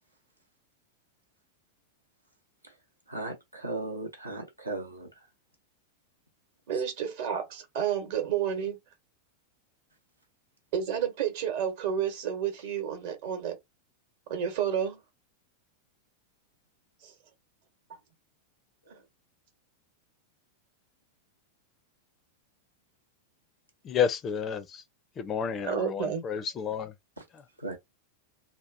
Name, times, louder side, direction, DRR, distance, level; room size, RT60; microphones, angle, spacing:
voice 1, 3.1-5.3 6.7-6.8 18.9-19.1 27.2-27.3 27.6-27.8, right 2 dB, 85° right, 0.8 m, -37 dB
voice 2, 6.7-8.8 10.7-13.6 14.3-15.0 17.0-17.1 25.6-26.2, right 8 dB, 50° right, 0.9 m, -30 dB
voice 3, 23.8-24.8 25.2-26.9, left 7 dB, 25° left, 0.4 m, -30 dB
2.8 x 2.0 x 2.5 m
figure-of-eight pair, 90°, 0 cm